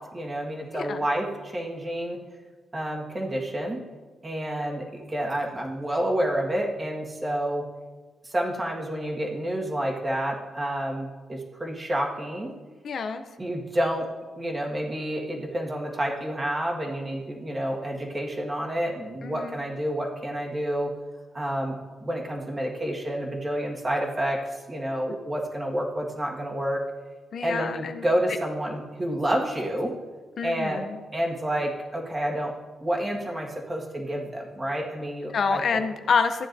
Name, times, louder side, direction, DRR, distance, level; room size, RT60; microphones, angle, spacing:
voice 1, 0.0-2.2 2.7-3.8 4.2-7.7 8.2-12.5 13.4-14.1 14.4-20.9 21.3-21.7 22.0-24.4 24.7-26.8 27.4-29.9 30.4-30.8 31.1-32.5 32.8-35.8, right 1 dB, 20° right, -1 dB, 1.6 m, -29 dB
voice 2, 12.8-13.2 19.2-19.6 27.3-28.0 30.4-31.0 35.3-36.5, left 5 dB, 55° left, 7 dB, 0.6 m, -27 dB
14.0 x 9.5 x 2.7 m, 1.3 s
wide cardioid pair, 140°, 0 cm